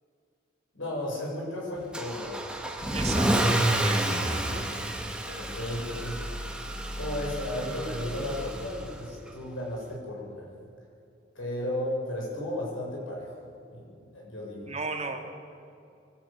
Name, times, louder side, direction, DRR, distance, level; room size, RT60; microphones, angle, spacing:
voice 1, 0.7-2.3 5.3-6.2 7.0-10.5 11.4-13.4 13.7-13.8 14.1-14.7, left 1 dB, 90° left, -2 dB, 7.2 m, -34 dB
Car / Engine starting / Accelerating revving vroom, 1.9-9.0, right 1 dB, 5° right, 1.6 m, -29 dB
voice 2, 2.9-4.6 14.7-15.2, right 3 dB, 35° right, 3 dB, 2.2 m, -36 dB
24.5 x 12.5 x 8.8 m, 2.5 s
head